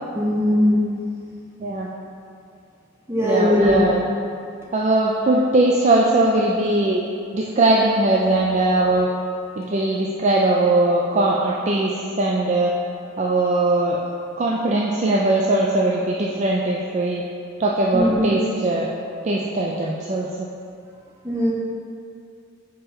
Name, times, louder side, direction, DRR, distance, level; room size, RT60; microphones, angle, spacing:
voice 1, 0.1-0.8 3.1-3.8 17.9-18.3 21.2-21.5, left 1 dB, 10° right, -4 dB, 0.7 m, -19 dB
voice 2, 3.2-4.0 4.7-7.0 7.3-9.1 9.6-12.7 13.2-14.0 14.4-17.2 17.6-18.9 19.2-20.5, right 2 dB, 35° right, -3 dB, 0.3 m, -20 dB
4.4 x 4.2 x 5.1 m, 2.4 s
head